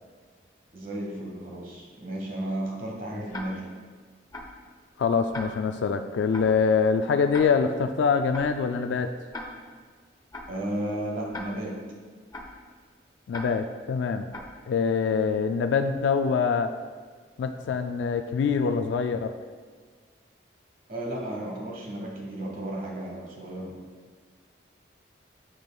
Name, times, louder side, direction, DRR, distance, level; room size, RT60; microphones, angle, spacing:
voice 1, 0.7-3.6 10.5-11.8 20.9-23.7, right 1 dB, 45° right, -2 dB, 1.4 m, -33 dB
Tick-tock, 3.3-3.8 4.3-4.7 5.3-5.8 6.3-6.7 7.3-7.8 8.3-8.7 9.3-9.8 10.3-10.7 11.3-11.8 12.3-12.7 13.3-13.8 14.3-14.7, left 1 dB, 20° left, 0.6 m, -40 dB
voice 2, 5.0-9.1 13.3-14.3 14.7-16.7 17.4-19.3, left 5 dB, 85° left, 7 dB, 0.3 m, -24 dB
7.8 x 7.2 x 2.3 m, 1.5 s
head